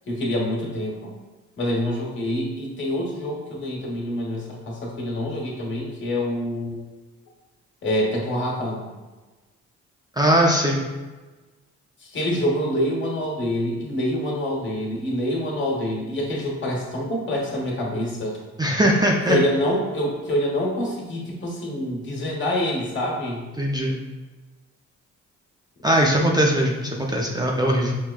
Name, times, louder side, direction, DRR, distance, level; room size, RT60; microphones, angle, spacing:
voice 1, 0.1-1.1 1.6-6.8 7.8-8.8 12.0-18.4 19.3-23.4, left 1 dB, 40° left, -3 dB, 1.2 m, -26 dB
voice 2, 10.2-10.8 18.6-19.4 23.6-24.0 25.8-27.9, right 1 dB, 15° right, -1 dB, 0.4 m, -20 dB
5.9 x 2.2 x 2.3 m, 1.2 s
cardioid pair, 90°, 30 cm